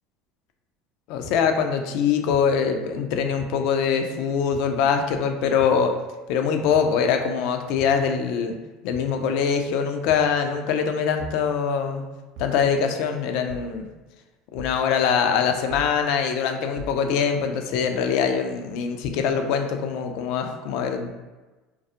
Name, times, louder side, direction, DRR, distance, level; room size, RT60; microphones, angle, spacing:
voice 1, 1.1-5.9 6.3-8.5 8.8-12.1 12.4-13.9 14.5-21.1, left 6 dB, 70° left, 5 dB, 0.3 m, -23 dB
sound 1, 1.2-1.3 2.3-2.4 3.4-3.5 4.5-4.7 5.6-5.8 6.7-6.9 7.8-8.0 8.9-9.1 10.1-10.3 11.2-11.4 12.4-12.6 13.5-13.7 14.6-14.8 15.7-15.9 16.8-17.0, left 1 dB, 65° right, 0.4 m, -39 dB
2.2 x 2.0 x 2.7 m, 1.2 s
supercardioid pair, 95°, 0 cm